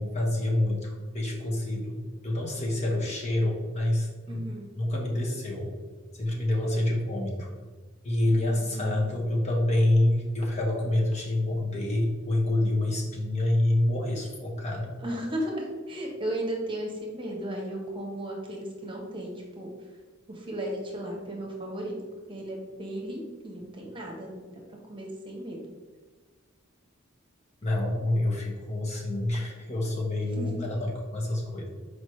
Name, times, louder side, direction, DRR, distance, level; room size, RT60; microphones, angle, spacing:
voice 1, 0.0-5.7 6.1-7.5 8.0-14.9 27.6-31.7, left 1 dB, 35° left, -1 dB, 1.1 m, -27 dB
voice 2, 4.3-4.7 8.3-9.0 15.0-19.7 20.3-22.0 22.3-24.4 24.9-25.6 30.2-30.6, right 1 dB, 25° right, 0 dB, 1.1 m, -35 dB
6.2 x 4.8 x 3.2 m, 1.4 s
head